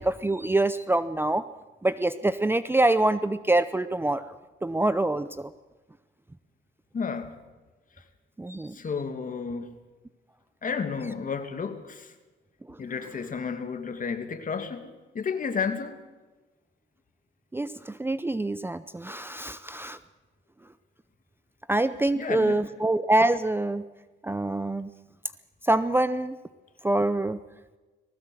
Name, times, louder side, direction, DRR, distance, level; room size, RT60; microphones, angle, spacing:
voice 1, 0.0-1.4 1.8-4.3 4.6-5.5 8.4-8.7 17.5-20.0 21.7-23.8 24.2-24.9 25.6-26.4 26.8-27.4, right 2 dB, 10° right, 13 dB, 0.7 m, -25 dB
voice 2, 6.9-7.3 8.7-9.8 10.6-12.1 12.8-16.0 22.2-22.6, left 5 dB, 40° left, 8 dB, 2.4 m, -32 dB
19.5 x 17.0 x 7.8 m, 1.2 s
cardioid pair, 90°, 20 cm